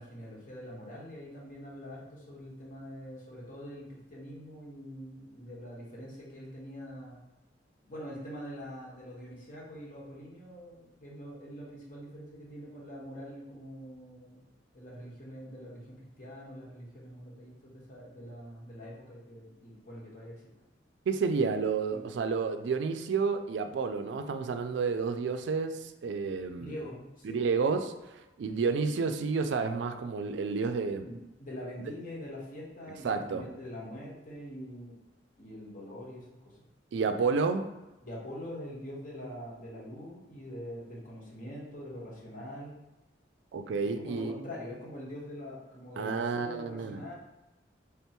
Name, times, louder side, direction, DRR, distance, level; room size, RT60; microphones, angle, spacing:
voice 1, 0.0-7.2 7.9-14.4 14.7-20.3 21.9-22.0 26.6-27.4 31.0-31.1 31.4-34.9 35.4-36.3 36.6-36.7 38.0-42.8 43.8-47.1, equal, 50° left, -4 dB, 1.2 m, -44 dB
voice 2, 21.1-26.8 27.2-31.1 33.0-33.5 36.9-37.7 43.5-44.4 46.0-47.0, right 5 dB, 80° right, 8 dB, 0.3 m, -30 dB
3.5 x 2.2 x 4.3 m, 1.0 s
head